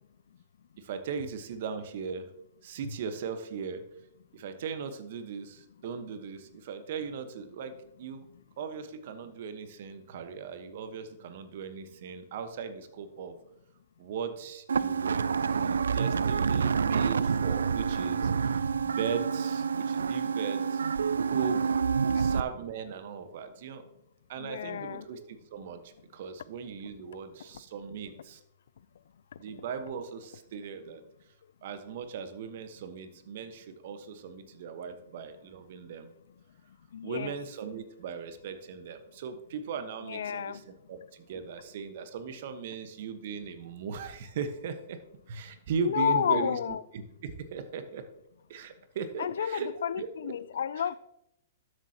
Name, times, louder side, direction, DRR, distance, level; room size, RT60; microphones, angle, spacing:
voice 1, 0.8-2.3 2.6-3.8 4.3-7.7 8.0-8.2 8.6-13.4 14.0-20.8 21.2-21.8 22.1-23.8 24.3-28.4 29.4-31.0 31.6-36.1 37.0-45.0 45.3-46.6 46.9-48.0 48.5-49.7 50.0-50.3 50.8-50.9, right 6 dB, 55° right, 1.2 m, -38 dB
sound 1, 14.7-22.4, right 6 dB, 80° right, 0.3 m, -28 dB
voice 2, 24.4-25.1 36.9-37.3 40.0-40.6 45.8-46.8 49.2-51.0, left 8 dB, 70° left, 0.4 m, -31 dB
12.5 x 7.9 x 2.9 m
hypercardioid pair, 120°, 0 cm